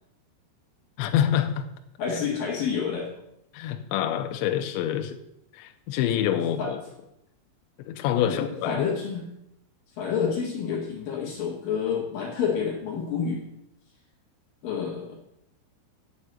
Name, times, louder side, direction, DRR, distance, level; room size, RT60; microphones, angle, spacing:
voice 1, 1.0-1.6 3.5-5.2 5.5-6.8 7.8-8.9, left 10 dB, 85° left, 2.6 m, -26 dB
voice 2, 2.0-3.1 6.4-6.7 8.2-9.3 10.0-13.4 14.6-15.2, left 6 dB, 60° left, 2.4 m, -29 dB
9.9 x 5.9 x 7.9 m
omnidirectional pair, 6.0 m